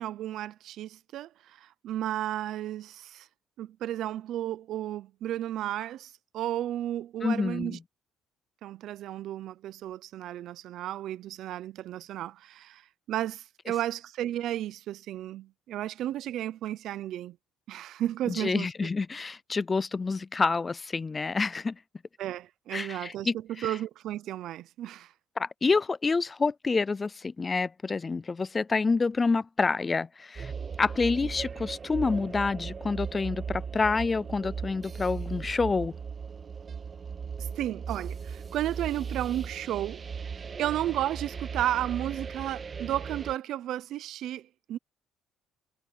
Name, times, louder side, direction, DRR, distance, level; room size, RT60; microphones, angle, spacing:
voice 1, 0.0-3.3 3.6-7.8 8.6-12.8 13.1-17.4 17.7-18.7 22.2-25.1 37.4-40.0 40.6-44.8, right 12 dB, 70° right, 0.7 m, -33 dB
voice 2, 7.2-7.8 18.3-21.8 22.7-23.7 25.4-30.5 30.8-36.0, left 4 dB, 25° left, 0.4 m, -28 dB
sound 1, 30.4-43.3, right 6 dB, 35° right, 1.5 m, -37 dB
cardioid pair, 115°, 0 cm